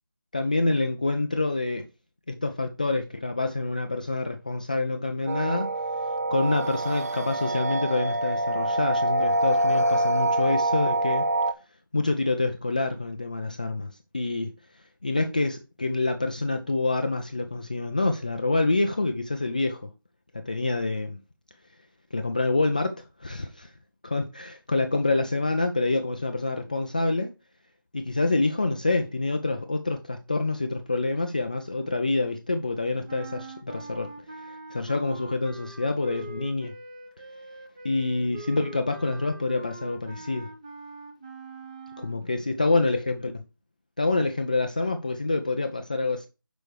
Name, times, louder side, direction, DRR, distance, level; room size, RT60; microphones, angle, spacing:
voice 1, 0.3-1.9 2.3-5.7 6.3-11.3 11.9-19.9 20.3-21.2 22.1-23.7 24.0-27.3 27.9-34.1 34.4-36.7 37.8-40.5 42.0-43.3 44.0-46.3, left 2 dB, 20° left, 0.3 m, -27 dB
sound 1, 5.3-11.5, right 1 dB, 40° right, 0.5 m, -25 dB
sound 2, 33.1-42.2, right 3 dB, 20° right, 1.0 m, -43 dB
6.4 x 5.1 x 4.6 m
figure-of-eight pair, 165°, 12 cm